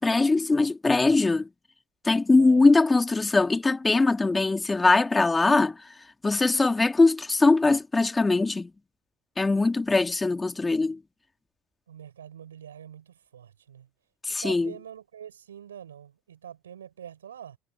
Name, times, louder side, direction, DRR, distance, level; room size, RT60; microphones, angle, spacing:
voice 1, 0.0-1.5 2.0-5.8 6.2-8.7 9.4-11.0 14.3-14.7, left 3 dB, 15° left, 2.6 m, -21 dB
voice 2, 2.4-2.7 11.9-13.9 14.4-17.6, right 9 dB, 80° right, 6.9 m, -44 dB
figure-of-eight pair, 65°, 0 cm